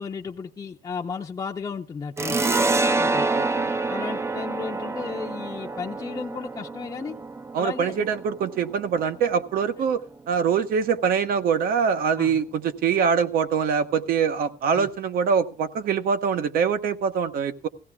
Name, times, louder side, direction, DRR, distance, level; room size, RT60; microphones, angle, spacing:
voice 1, 0.0-2.4 3.0-3.3 3.9-7.2 7.6-8.1 12.2-12.4 14.8-14.9, left 5 dB, 25° left, -1 dB, 0.7 m, -34 dB
sound 1, 2.2-9.4, right 3 dB, 15° right, 0.5 m, -27 dB
voice 2, 3.3-3.7 7.5-10.0 10.3-17.7, right 6 dB, 70° right, 9 dB, 1.1 m, -24 dB
20.0 x 16.0 x 2.3 m, 0.38 s
cardioid pair, 140°, 16 cm